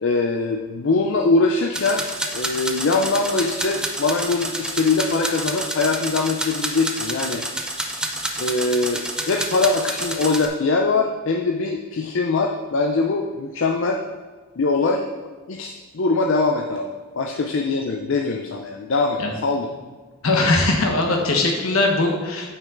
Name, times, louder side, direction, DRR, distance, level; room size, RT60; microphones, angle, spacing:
voice 1, 0.0-2.0 2.3-7.4 8.4-14.0 14.6-15.0 15.5-19.7, left 3 dB, 60° left, 2 dB, 0.5 m, -22 dB
sound 1, 1.7-10.5, right 1 dB, 5° right, 0.5 m, -29 dB
voice 2, 20.2-22.5, left 2 dB, 80° left, 1 dB, 1.3 m, -20 dB
8.7 x 5.4 x 3.8 m, 1.4 s
head